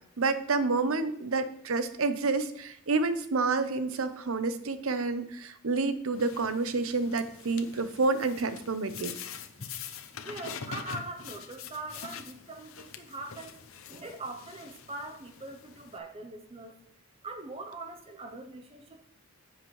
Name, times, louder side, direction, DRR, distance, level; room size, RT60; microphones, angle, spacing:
voice 1, 0.2-9.1, right 3 dB, 75° right, 11 dB, 0.7 m, -29 dB
sound 1, 6.1-16.0, left 7 dB, 75° left, 0.7 m, -44 dB
voice 2, 10.2-13.6 13.9-16.8 17.2-19.1, right 2 dB, 25° right, 5 dB, 0.7 m, -42 dB
10.0 x 8.0 x 3.2 m, 0.69 s
head